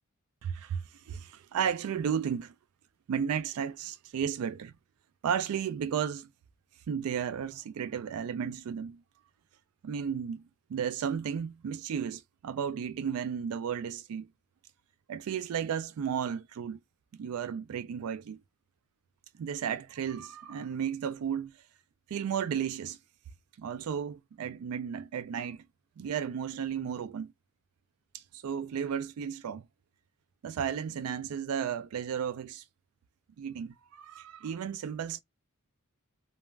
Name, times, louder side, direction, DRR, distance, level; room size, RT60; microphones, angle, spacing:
voice 1, 0.4-2.5 3.1-4.7 5.2-6.3 6.9-9.0 9.8-10.4 10.7-14.3 15.1-16.8 17.2-18.4 19.4-21.5 22.1-23.0 23.6-25.6 26.0-27.3 28.1-29.6 30.4-32.6 33.4-35.2, right 7 dB, 75° right, 0.3 m, -34 dB
2.4 x 2.1 x 3.1 m
head